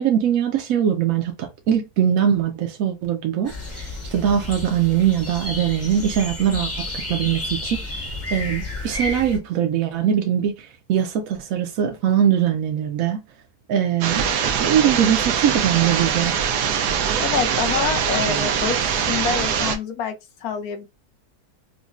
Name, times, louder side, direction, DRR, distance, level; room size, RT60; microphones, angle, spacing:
voice 1, 0.0-7.8 8.3-13.2 13.7-14.2 14.6-16.3, right 9 dB, 65° right, 1.0 m, -21 dB
sound 1, 3.5-9.4, left 2 dB, 10° left, 0.8 m, -31 dB
sound 2, 14.0-19.8, right 7 dB, 85° right, 1.2 m, -22 dB
voice 2, 17.2-20.1 20.4-20.9, left 7 dB, 70° left, 1.1 m, -26 dB
5.0 x 2.2 x 2.4 m
omnidirectional pair, 1.7 m